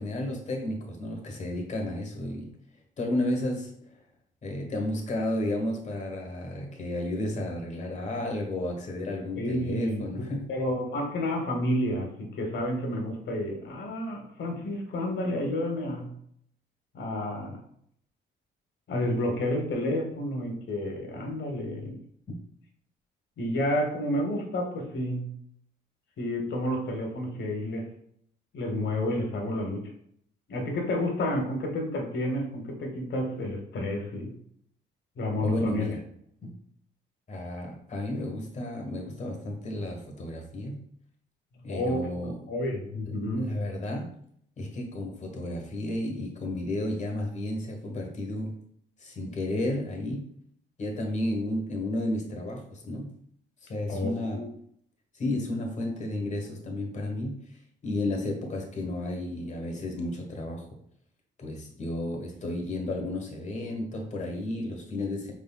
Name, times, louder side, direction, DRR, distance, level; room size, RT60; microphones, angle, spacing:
voice 1, 0.0-2.5 3.0-3.7 4.4-10.5 35.4-36.0 36.4-36.5 37.3-40.9 41.6-42.4 43.4-44.2 44.6-48.5 49.0-50.3 50.8-53.1 53.6-54.4 55.1-57.4 57.8-60.7 61.4-65.3, left 1 dB, 35° left, 1 dB, 1.2 m, -32 dB
voice 2, 9.4-16.1 16.9-17.6 18.9-22.0 23.4-25.3 26.2-27.9 28.5-29.9 30.5-34.4 35.2-35.9 41.7-43.6 53.9-54.5, left 1 dB, 65° left, 2 dB, 1.1 m, -30 dB
4.9 x 3.6 x 2.3 m, 0.67 s
cardioid pair, 90°, 20 cm